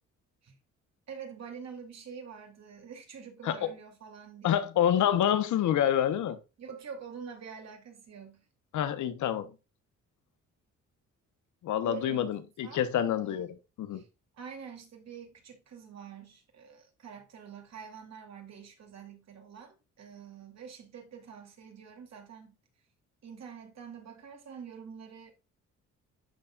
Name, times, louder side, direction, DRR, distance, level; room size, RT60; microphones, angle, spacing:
voice 1, 1.1-4.7 6.6-8.4 11.8-12.3 12.6-12.8 13.2-13.5 13.9-14.1 14.4-22.5 23.2-25.3, right 6 dB, 60° right, 2.7 m, -46 dB
voice 2, 4.4-6.4 8.7-9.5 11.6-14.0, left 10 dB, 75° left, 1.0 m, -27 dB
11.5 x 4.2 x 2.4 m
cardioid pair, 90°, 30 cm